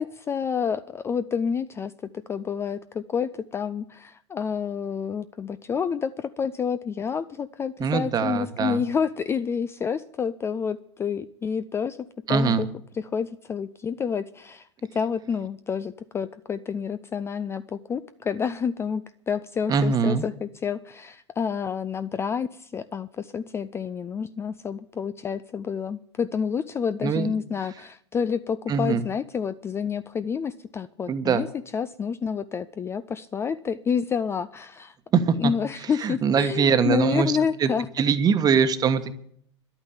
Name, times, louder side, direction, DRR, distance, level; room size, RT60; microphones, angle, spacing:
voice 1, 0.0-1.9 2.3-12.7 12.9-14.7 14.9-31.5 31.7-34.9 35.4-37.9, left 6 dB, 15° left, 13 dB, 0.4 m, -29 dB
voice 2, 7.8-8.8 12.3-12.7 19.7-20.2 27.0-27.3 28.7-29.0 31.1-31.4 35.1-35.5 36.0-37.3 37.6-37.7 38.0-39.1, right 6 dB, 25° right, 10 dB, 1.2 m, -22 dB
11.5 x 8.8 x 8.8 m, 0.67 s
figure-of-eight pair, 95°, 15 cm